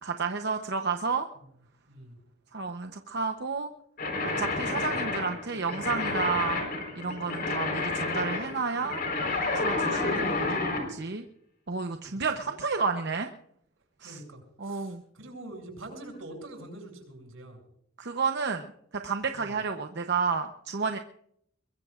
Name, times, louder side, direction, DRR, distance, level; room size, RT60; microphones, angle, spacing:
voice 1, 0.0-1.3 2.5-3.7 4.4-6.7 6.9-9.0 9.5-10.6 10.9-11.2 11.7-13.3 14.0-14.2 14.6-15.0 18.0-18.7 18.9-21.0, right 5 dB, 55° right, 5 dB, 0.9 m, -31 dB
voice 2, 1.9-2.2 4.4-4.7 9.7-10.1 12.0-12.5 14.0-17.6 19.3-19.6, right 1 dB, 85° right, 1 dB, 7.6 m, -46 dB
sound 1, 4.0-10.9, left 3 dB, 50° left, 4.4 m, -30 dB
22.5 x 22.5 x 2.5 m, 0.71 s
head